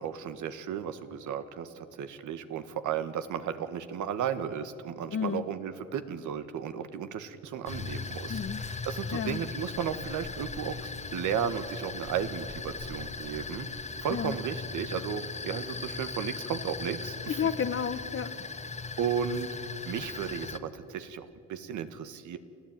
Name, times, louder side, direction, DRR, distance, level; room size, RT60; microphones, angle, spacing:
voice 1, 0.0-17.4 19.0-19.6 19.8-22.4, right 8 dB, 80° right, 10 dB, 1.5 m, -34 dB
voice 2, 5.1-5.5 8.3-8.6 9.1-9.4 14.1-14.4 17.3-18.4, left 7 dB, 45° left, 9 dB, 1.0 m, -31 dB
sound 1, 7.7-20.6, left 4 dB, 25° left, 1.3 m, -38 dB
29.0 x 14.5 x 9.1 m, 2.8 s
cardioid pair, 90°, 30 cm